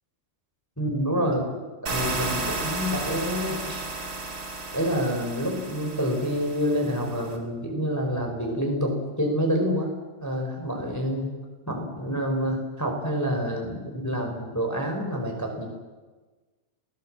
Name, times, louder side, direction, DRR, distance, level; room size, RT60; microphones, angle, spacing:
voice 1, 0.8-1.5 1.9-3.8 4.7-11.3 11.7-15.6, equal, 5° left, 2 dB, 4.0 m, -27 dB
sound 1, 1.9-7.4, right 3 dB, 25° right, 2.5 m, -33 dB
28.5 x 17.5 x 7.6 m, 1.3 s
omnidirectional pair, 4.5 m